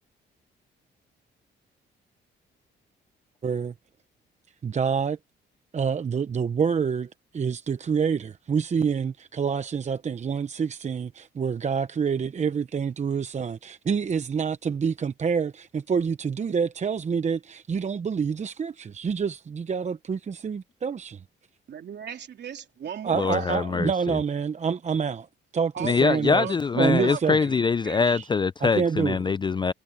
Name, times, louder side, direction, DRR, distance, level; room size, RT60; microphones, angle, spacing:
voice 1, 3.4-3.7 4.6-5.2 5.7-21.2 23.0-25.3 25.5-26.5 26.8-27.4 28.1-28.3 28.6-29.2, right 6 dB, 35° right, 0.8 m, -27 dB
voice 2, 21.7-23.6 25.7-27.5 27.8-28.0, right 8 dB, 60° right, 3.3 m, -36 dB
voice 3, 23.1-24.2 25.8-29.7, left 5 dB, 25° left, 0.4 m, -24 dB
cardioid pair, 90°, 20 cm